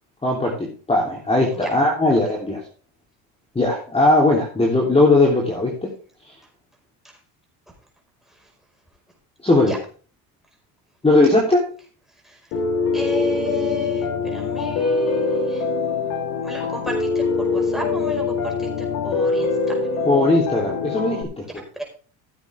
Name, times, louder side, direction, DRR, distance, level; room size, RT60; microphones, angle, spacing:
voice 1, 0.2-2.6 3.5-5.9 9.4-9.8 11.0-11.6 20.0-21.6, left 2 dB, 15° left, -2 dB, 3.3 m, -18 dB
voice 2, 9.5-9.8 12.2-12.4 12.9-15.6 16.4-19.8, equal, ahead, 0 dB, 5.0 m, -33 dB
Piano, 12.5-21.2, left 4 dB, 90° left, 2.1 m, -23 dB
15.5 x 8.0 x 3.5 m, 0.38 s
cardioid pair, 115°, 40 cm